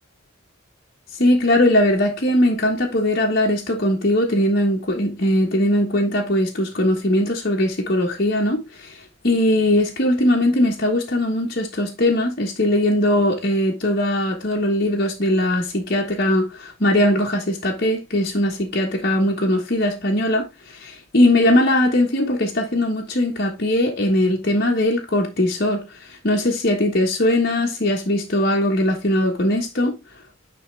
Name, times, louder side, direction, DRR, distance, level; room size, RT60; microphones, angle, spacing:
voice 1, 1.2-9.0 9.2-29.9, left 1 dB, 50° left, 1.3 m, -20 dB
9.3 x 3.6 x 3.4 m
head